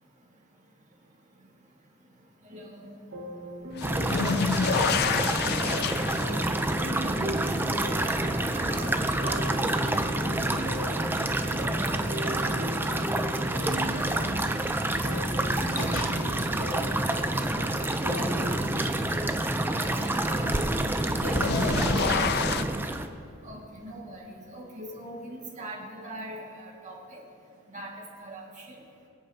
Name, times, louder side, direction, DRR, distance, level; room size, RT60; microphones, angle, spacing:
voice 1, 2.4-2.9 8.1-10.0 13.8-14.3 19.7-20.8 23.4-27.2 27.7-28.8, right 1 dB, 35° right, -2 dB, 1.9 m, -41 dB
sound 1, 3.1-18.6, right 1 dB, 55° right, 1.5 m, -39 dB
sound 2, 3.8-10.8 11.2-11.9 13.5-13.6 15.2-15.3 21.0-22.6, left 6 dB, 50° left, 0.4 m, -30 dB
sound 3, 3.8-23.1, right 1 dB, 10° right, 0.5 m, -28 dB
voice 2, 14.9-15.4 15.7-16.1 18.1-18.4 21.1-22.7, equal, 70° left, -4 dB, 2.7 m, -35 dB
24.0 x 8.6 x 2.8 m, 2.4 s
head